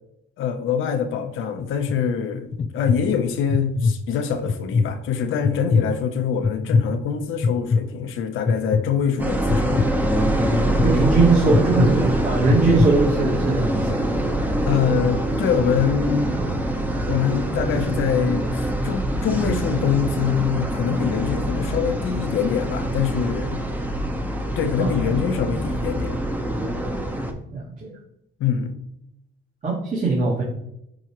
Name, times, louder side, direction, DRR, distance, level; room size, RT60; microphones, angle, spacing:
voice 1, 0.4-9.9 14.7-16.3 17.1-23.6 24.6-26.2 28.4-28.7, left 7 dB, 85° left, 7 dB, 0.8 m, -24 dB
sound 1, 1.6-2.0 2.5-3.0 3.5-3.9 4.4-4.9 5.4-5.9 6.4-6.9 7.4-7.8 8.5-8.8 9.5-9.9 10.5-10.9 11.5-11.9 12.4-12.9, left 4 dB, 35° left, 0.5 m, -20 dB
sound 2, 9.2-27.3, right 1 dB, 10° right, 0.9 m, -24 dB
voice 2, 10.8-13.9 24.8-25.1 27.5-27.9 29.6-30.4, right 3 dB, 45° right, -6 dB, 2.0 m, -20 dB
7.6 x 4.8 x 3.0 m, 0.81 s
cardioid pair, 90°, 20 cm